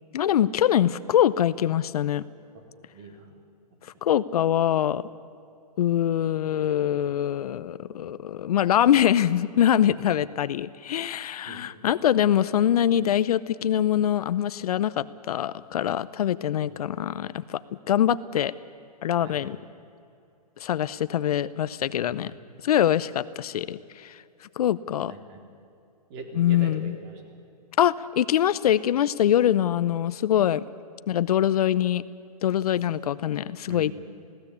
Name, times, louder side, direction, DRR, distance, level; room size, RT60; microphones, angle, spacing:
voice 1, 0.1-2.2 4.0-5.0 5.8-17.6 17.9-18.5 19.0-19.6 20.6-22.3 22.6-24.2 24.6-25.1 26.4-27.0 27.8-30.6 31.1-32.1 32.4-34.0, left 10 dB, 65° left, 16 dB, 0.7 m, -23 dB
voice 2, 2.9-3.3 3.7-3.8 11.4-11.6 16.7-16.8 19.2-19.6 25.1-25.4 26.1-27.5 32.6-33.0 33.7-34.0, right 2 dB, 40° right, 4 dB, 3.7 m, -42 dB
20.5 x 17.0 x 8.3 m, 2.6 s
hypercardioid pair, 145°, 21 cm